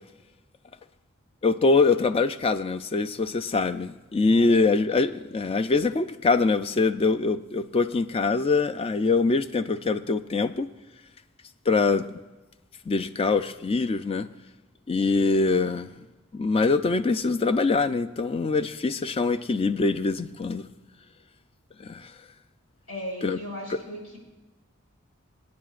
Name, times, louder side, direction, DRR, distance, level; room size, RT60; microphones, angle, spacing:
voice 1, 1.4-10.7 11.7-12.1 12.9-14.3 14.9-15.9 16.3-20.6 21.8-22.1 23.2-23.4, left 3 dB, 25° left, 11 dB, 0.3 m, -24 dB
voice 2, 4.2-4.8 22.9-24.2, equal, 75° left, -1 dB, 4.6 m, -38 dB
23.5 x 9.5 x 2.5 m, 1.2 s
head